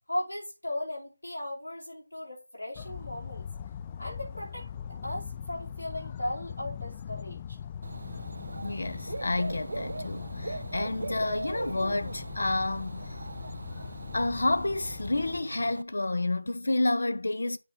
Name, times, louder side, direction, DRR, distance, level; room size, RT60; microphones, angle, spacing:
voice 1, 0.1-3.5 4.0-4.7 5.0-7.6, left 1 dB, 85° left, 4.6 m, -37 dB
sound 1, 2.7-15.4, left 8 dB, 20° left, 0.3 m, -41 dB
Dog / Bird, 7.8-15.8, right 2 dB, 70° right, 0.3 m, -39 dB
voice 2, 8.6-13.2 14.1-17.6, left 2 dB, 65° left, 0.6 m, -29 dB
9.1 x 4.2 x 3.8 m
figure-of-eight pair, 165°, 0 cm